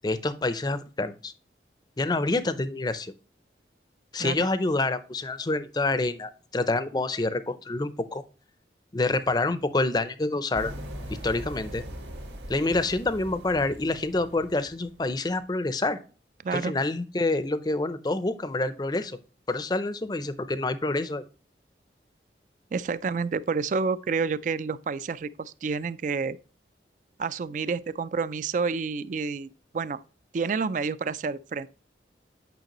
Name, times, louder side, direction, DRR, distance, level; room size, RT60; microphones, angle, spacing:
voice 1, 0.0-1.3 2.0-3.1 4.1-8.2 8.9-10.7 11.2-11.8 12.5-16.0 16.5-19.2 19.5-21.2, left 2 dB, 25° left, 0.5 m, -27 dB
sound 1, 10.5-15.3, equal, 90° right, 1.8 m, -41 dB
voice 2, 16.4-16.8 22.7-26.4 27.2-30.0 30.3-31.7, right 5 dB, 45° right, 0.3 m, -29 dB
9.0 x 5.9 x 3.0 m
head